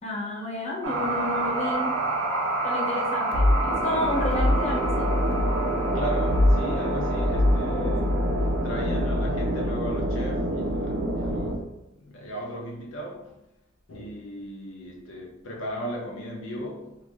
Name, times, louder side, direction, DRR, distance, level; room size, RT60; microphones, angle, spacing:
voice 1, 0.0-1.9 2.6-5.2 7.7-8.1, left 1 dB, 35° left, 0.7 m, -31 dB
sound 1, 0.8-11.6, equal, 80° right, 0.5 m, -24 dB
voice 2, 5.9-13.4 13.9-17.0, equal, 75° left, 0.5 m, -37 dB
2.5 x 2.3 x 3.0 m
head